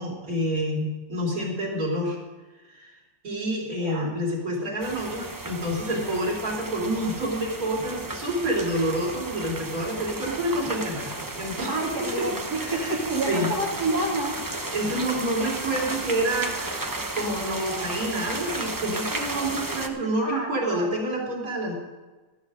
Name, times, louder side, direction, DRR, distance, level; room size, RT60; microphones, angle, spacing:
voice 1, 0.0-2.2 2.7-2.9 3.2-11.7 12.6-13.0 13.3-13.5 14.7-21.7, right 1 dB, 60° right, -2 dB, 3.8 m, -28 dB
voice 2, 3.8-4.1 11.7-14.4 20.2-21.0, right 2 dB, 80° right, -2 dB, 3.2 m, -29 dB
sound 1, 4.8-19.9, right 2 dB, 20° right, 0.6 m, -34 dB
13.0 x 12.5 x 5.0 m, 1.2 s
omnidirectional pair, 1.7 m